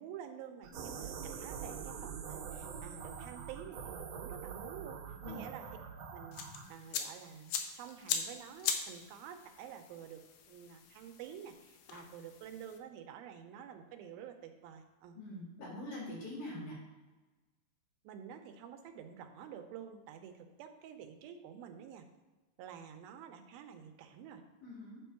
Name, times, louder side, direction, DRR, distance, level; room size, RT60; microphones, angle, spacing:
voice 1, 0.0-5.0 5.3-5.7 6.1-15.2 18.0-22.1 22.6-24.4, right 8 dB, 90° right, 6 dB, 2.5 m, -49 dB
sound 1, 0.6-6.7, right 7 dB, 70° right, 1.6 m, -44 dB
sound 2, 6.3-12.8, left 7 dB, 90° left, 2.7 m, -41 dB
voice 2, 15.2-16.8 24.6-25.0, left 1 dB, 60° left, -6 dB, 4.2 m, -44 dB
9.3 x 4.6 x 5.6 m, 1.2 s
omnidirectional pair, 4.3 m